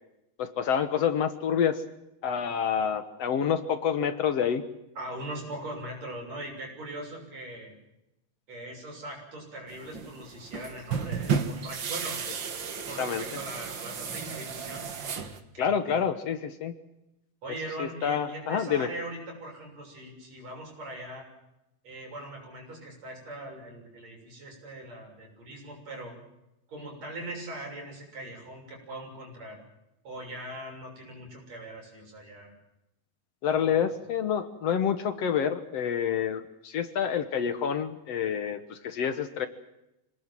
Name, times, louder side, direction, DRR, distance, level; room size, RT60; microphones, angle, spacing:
voice 1, 0.4-1.8 2.2-4.6 13.0-13.2 15.6-16.7 17.8-18.9 33.4-39.5, left 8 dB, 65° left, 10 dB, 2.2 m, -28 dB
voice 2, 5.0-7.8 8.5-12.2 12.8-14.9 15.5-16.0 17.4-21.3 21.8-26.1 26.7-29.6 30.0-32.5 33.5-33.8, right 1 dB, 65° right, 1 dB, 8.0 m, -41 dB
sound 1, 9.7-15.4, right 6 dB, 45° right, 1.9 m, -33 dB
26.5 x 19.0 x 7.6 m, 0.90 s
omnidirectional pair, 3.3 m